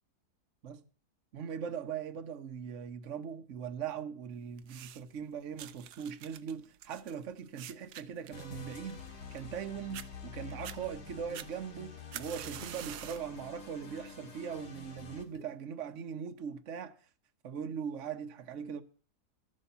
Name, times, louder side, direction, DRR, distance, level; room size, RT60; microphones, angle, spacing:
voice 1, 1.3-17.0 17.4-18.8, right 7 dB, 50° right, 1.3 m, -40 dB
sound 1, 4.6-5.2 5.6-9.6 9.9-10.1 10.5-10.8 11.3-13.3 13.8-14.1 14.9-15.0, right 11 dB, 85° right, 1.3 m, -46 dB
sound 2, 8.3-15.3, left 5 dB, 75° left, 2.3 m, -48 dB
sound 3, 11.3-11.5 12.6-12.8 14.0-14.1 15.3-15.6, left 7 dB, 50° left, 0.5 m, -53 dB
13.5 x 7.0 x 6.8 m
omnidirectional pair, 1.7 m